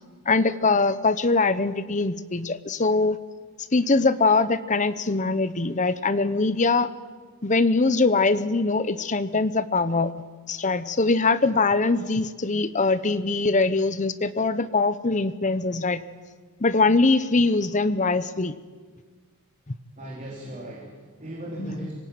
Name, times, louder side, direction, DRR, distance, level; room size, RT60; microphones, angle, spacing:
voice 1, 0.3-3.2 3.7-6.9 7.4-10.1 10.5-16.0 16.6-18.6 21.6-21.9, left 3 dB, 35° left, 13 dB, 0.9 m, -22 dB
voice 2, 20.0-21.9, right 1 dB, 35° right, -3 dB, 4.1 m, -37 dB
25.5 x 19.0 x 9.4 m, 1.5 s
head